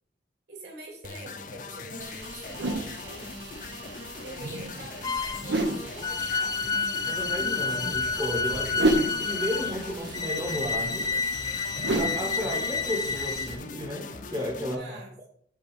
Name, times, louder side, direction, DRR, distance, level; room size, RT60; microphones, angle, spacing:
voice 1, 0.5-3.2 4.2-6.6 14.7-15.3, right 1 dB, 65° right, -1 dB, 3.3 m, -45 dB
sound 1, 1.0-14.7, left 4 dB, 45° left, 0.7 m, -41 dB
sound 2, 2.0-13.5, right 2 dB, 90° right, 1.0 m, -33 dB
sound 3, 5.0-5.5 6.0-13.5, left 4 dB, 20° left, 0.3 m, -30 dB
voice 2, 7.0-11.1 11.9-15.0, equal, 20° right, 1 dB, 1.0 m, -33 dB
8.2 x 4.0 x 6.3 m, 0.65 s
head